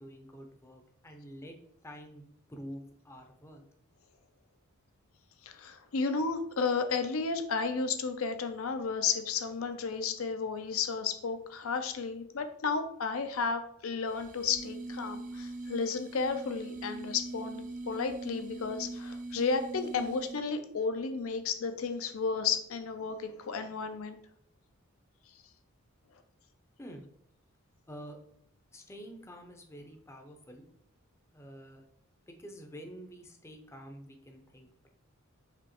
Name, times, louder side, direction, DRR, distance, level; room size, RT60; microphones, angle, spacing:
voice 1, 0.0-1.5 1.8-2.2 2.5-3.6 26.8-27.1 27.9-28.2 28.7-30.6 31.3-31.8 32.3-34.9, equal, 15° left, 3 dB, 0.6 m, -48 dB
voice 2, 5.4-24.2, left 5 dB, 70° left, 8 dB, 0.5 m, -33 dB
sound 1, 14.0-20.6, right 2 dB, 40° right, 0.4 m, -42 dB
5.0 x 3.0 x 3.0 m, 0.65 s
head